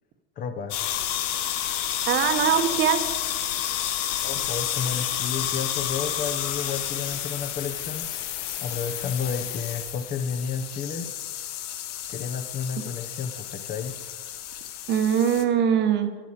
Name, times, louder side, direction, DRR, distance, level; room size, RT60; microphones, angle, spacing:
voice 1, 0.4-0.8 4.2-8.3 8.6-11.1 12.1-13.9, left 6 dB, 25° left, 6 dB, 0.7 m, -31 dB
sound 1, 0.7-15.4, left 11 dB, 85° left, 1.4 m, -30 dB
voice 2, 2.0-3.0 14.9-16.1, right 8 dB, 30° right, 8 dB, 1.0 m, -22 dB
11.0 x 6.4 x 8.6 m, 1.3 s
supercardioid pair, 155°, 36 cm